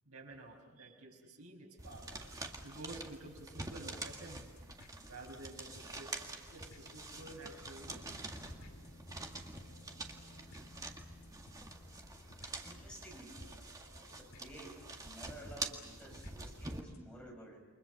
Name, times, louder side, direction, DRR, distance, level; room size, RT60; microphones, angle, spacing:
voice 1, 0.1-2.1 2.6-4.5 5.1-8.3, right 2 dB, 80° right, 1 dB, 5.8 m, -51 dB
sound 1, 1.8-16.8, right 2 dB, 15° right, 1.8 m, -47 dB
sound 2, 1.9-17.2, left 1 dB, 70° left, 2.6 m, -61 dB
sound 3, 6.8-13.2, left 1 dB, 30° left, 1.0 m, -58 dB
voice 2, 12.6-13.4 14.1-17.7, right 1 dB, 5° left, -1 dB, 7.0 m, -53 dB
29.5 x 24.5 x 6.9 m, 1.2 s
head